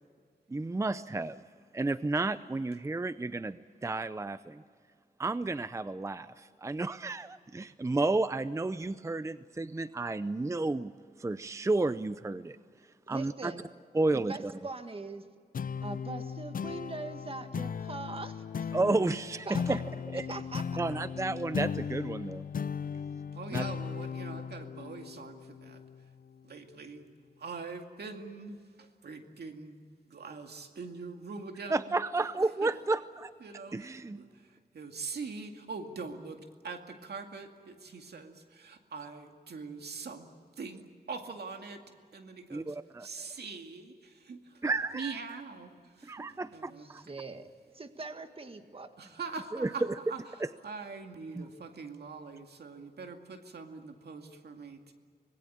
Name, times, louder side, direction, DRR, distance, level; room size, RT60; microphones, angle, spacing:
voice 1, 0.5-1.4 1.7-3.6 3.8-4.6 5.2-10.9 11.2-12.6 13.1-13.5 13.9-14.5 18.7-19.8 20.1-20.2 20.8-22.4 23.5-23.6 31.7-33.3 33.7-34.2 42.5-43.1 44.6-45.1 46.0-46.4 49.6-49.7 51.3-51.4, right 2 dB, 20° right, 14 dB, 0.5 m, -31 dB
voice 2, 13.1-13.7 14.1-15.3 15.8-18.7 19.5-19.8 20.3-20.8 47.1-47.4 47.7-48.9, right 3 dB, 35° right, 7 dB, 1.7 m, -41 dB
sound 1, 15.5-26.4, left 6 dB, 60° left, 0.5 m, -37 dB
voice 3, 23.3-25.8 26.4-27.0 27.4-29.8 30.1-32.0 32.6-32.7 33.4-41.8 42.1-46.8 49.0-54.9, right 4 dB, 85° right, 4 dB, 2.3 m, -43 dB
25.5 x 20.5 x 8.7 m, 2.1 s
wide cardioid pair, 110°, 16 cm